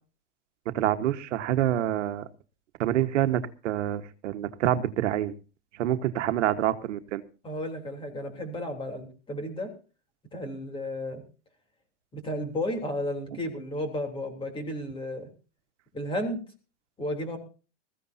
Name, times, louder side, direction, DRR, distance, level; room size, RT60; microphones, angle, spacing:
voice 1, 0.7-2.3 2.8-5.3 5.8-7.2, right 12 dB, 80° right, 10 dB, 1.4 m, -27 dB
voice 2, 7.4-9.7 10.3-11.2 12.1-15.2 15.9-16.4 17.0-17.4, left 1 dB, 15° left, 4 dB, 3.3 m, -33 dB
21.0 x 15.0 x 2.7 m, 0.35 s
supercardioid pair, 160°, 36 cm